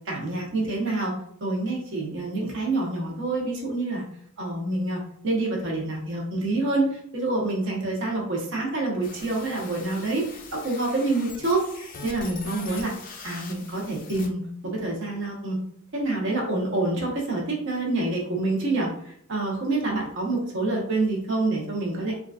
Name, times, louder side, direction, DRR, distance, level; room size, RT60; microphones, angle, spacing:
voice 1, 0.1-4.0 4.4-10.2 10.5-12.9 13.2-15.6 15.9-18.9 19.3-22.1, right 2 dB, 55° right, -2 dB, 1.0 m, -27 dB
sound 1, 9.0-14.3, left 4 dB, 40° left, 0.4 m, -42 dB
3.8 x 2.4 x 2.4 m, 0.65 s
head